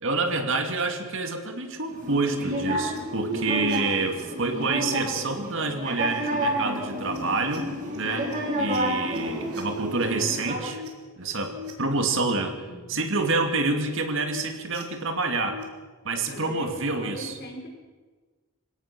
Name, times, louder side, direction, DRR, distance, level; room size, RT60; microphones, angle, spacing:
voice 1, 0.0-8.3 8.6-10.8 11.2-12.6 12.9-15.6 16.0-17.3, right 3 dB, 60° right, 5 dB, 2.4 m, -27 dB
sound 1, 1.9-10.6, right 1 dB, 40° right, 6.7 m, -30 dB
sound 2, 2.9-4.6 5.0-5.5 6.1-6.4 6.7-9.2 9.5-12.2 12.8-13.2 13.6-15.6 16.1-16.5, left 3 dB, 85° right, 4.2 m, -44 dB
voice 2, 4.9-5.4 12.5-13.0 16.3-17.7, equal, 45° left, 2 dB, 4.4 m, -39 dB
27.0 x 17.0 x 6.1 m, 1.3 s
head